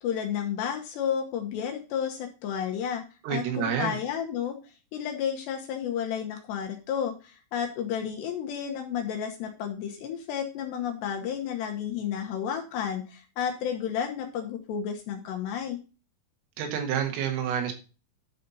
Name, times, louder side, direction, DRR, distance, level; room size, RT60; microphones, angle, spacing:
voice 1, 0.0-3.0 3.3-4.6 4.9-15.8, left 8 dB, 70° left, 3 dB, 2.9 m, -31 dB
voice 2, 3.2-4.0 16.6-17.7, right 8 dB, 85° right, 4 dB, 4.2 m, -28 dB
11.5 x 4.2 x 5.4 m, 0.33 s
omnidirectional pair, 5.7 m